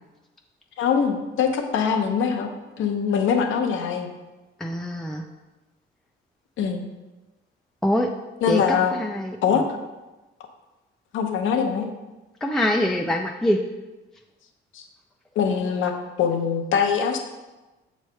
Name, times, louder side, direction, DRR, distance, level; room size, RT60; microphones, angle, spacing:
voice 1, 0.8-2.5 2.8-4.1 6.6-6.8 8.4-9.0 9.4-9.7 11.1-11.9 14.7-14.8 15.4-15.9 16.2-17.2, left 7 dB, 80° left, 5 dB, 0.8 m, -23 dB
voice 2, 4.6-5.2 7.8-8.1 8.5-9.6 12.4-13.6, left 1 dB, ahead, 1 dB, 0.4 m, -24 dB
6.5 x 3.1 x 5.5 m, 1.1 s
cardioid pair, 90°, 20 cm